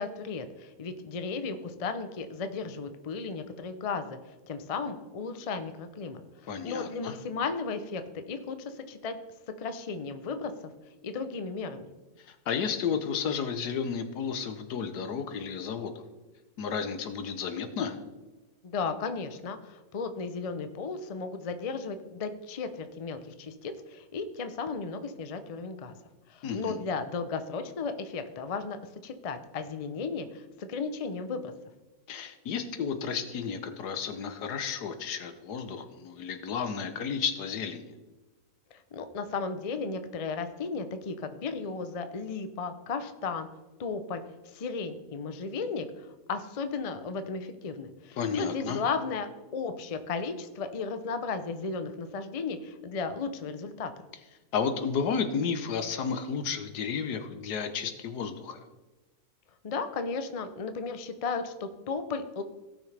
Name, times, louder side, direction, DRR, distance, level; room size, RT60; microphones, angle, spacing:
voice 1, 0.0-4.2 4.5-9.2 9.6-10.7 11.0-11.9 18.6-25.9 26.3-31.5 38.7-43.5 43.8-53.9 59.6-62.4, left 4 dB, 45° left, 9 dB, 0.4 m, -35 dB
voice 2, 6.5-7.2 12.2-15.9 16.6-18.0 26.4-26.8 32.1-37.9 48.2-48.8 54.5-58.6, left 6 dB, 90° left, 9 dB, 1.5 m, -32 dB
17.5 x 6.1 x 3.4 m, 1.2 s
omnidirectional pair, 1.7 m